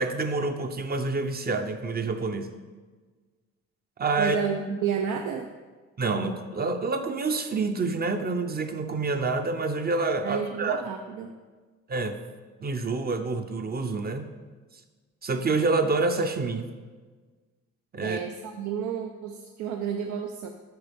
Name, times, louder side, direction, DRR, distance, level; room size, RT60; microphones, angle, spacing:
voice 1, 0.0-2.5 4.0-4.4 6.0-10.8 11.9-12.2 12.6-14.3 15.2-16.7 17.9-18.2, right 3 dB, 30° right, 7 dB, 0.6 m, -27 dB
voice 2, 4.2-5.5 10.2-11.3 18.0-20.5, right 8 dB, 75° right, 4 dB, 0.6 m, -31 dB
7.9 x 5.5 x 3.5 m, 1.4 s
cardioid pair, 90°, 30 cm